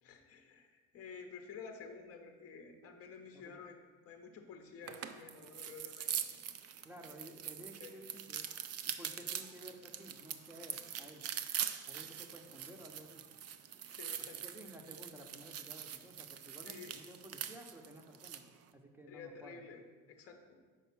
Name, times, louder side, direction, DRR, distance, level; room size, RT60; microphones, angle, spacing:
voice 1, 0.0-6.3 7.8-8.0 13.8-14.4 16.6-16.9 19.1-19.8 20.1-20.6, left 5 dB, 40° left, 5 dB, 0.8 m, -51 dB
sound 1, 4.8-18.5, right 9 dB, 40° right, 0.5 m, -43 dB
voice 2, 6.8-8.5 9.0-11.2 11.9-13.2 14.4-18.4 18.7-19.6, right 1 dB, 5° right, 2 dB, 0.8 m, -54 dB
5.0 x 4.7 x 5.9 m, 1.5 s
supercardioid pair, 85°, 38 cm